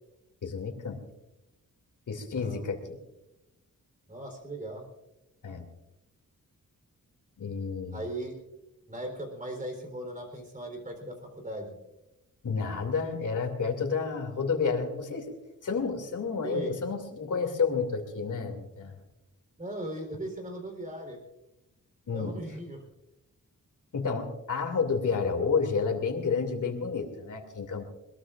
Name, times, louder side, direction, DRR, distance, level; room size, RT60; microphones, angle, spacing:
voice 1, 0.4-1.0 2.1-3.0 5.4-5.7 7.4-8.0 12.4-15.3 15.6-18.9 22.1-22.4 23.9-27.9, left 5 dB, 60° left, 4 dB, 2.7 m, -30 dB
voice 2, 2.2-2.6 4.1-4.8 7.9-8.3 8.9-11.8 16.4-16.7 19.6-21.2 22.1-22.8, right 1 dB, 25° right, 3 dB, 3.9 m, -38 dB
22.0 x 21.0 x 2.5 m, 0.95 s
wide cardioid pair, 175°, 34 cm